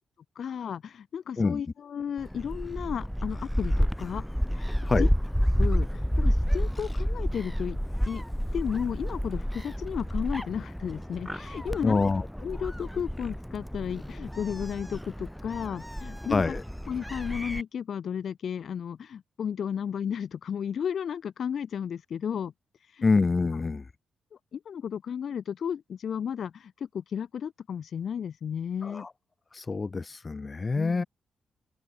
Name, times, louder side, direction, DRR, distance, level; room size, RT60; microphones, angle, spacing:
voice 1, 0.4-4.2 4.5-4.7 5.0-5.1 5.6-7.8 8.1-8.2 8.5-12.0 12.4-16.4 16.9-22.5 22.9-23.1 24.5-29.1 30.7-31.1, left 8 dB, 55° left, 5.8 m, -33 dB
Gull seagull, 2.2-17.6, equal, ahead, 3.0 m, -30 dB
voice 2, 11.8-12.3 16.3-16.6 23.0-23.9 28.8-29.1 29.5-31.0, left 4 dB, 25° left, 3.6 m, -26 dB
open air
wide cardioid pair, 145°, 0 cm